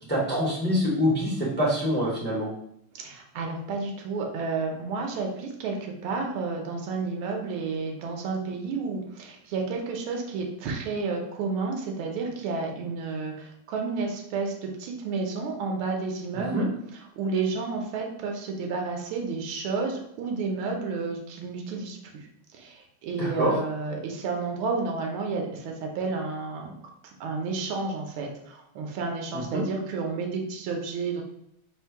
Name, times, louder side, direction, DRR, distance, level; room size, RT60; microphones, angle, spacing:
voice 1, 0.1-2.5 16.5-16.7 23.2-23.5 29.3-29.6, equal, 10° left, -5 dB, 0.4 m, -25 dB
voice 2, 2.9-16.7 17.2-26.7 27.2-31.2, right 4 dB, 75° right, 2 dB, 1.6 m, -31 dB
4.3 x 2.7 x 4.5 m, 0.72 s
omnidirectional pair, 2.4 m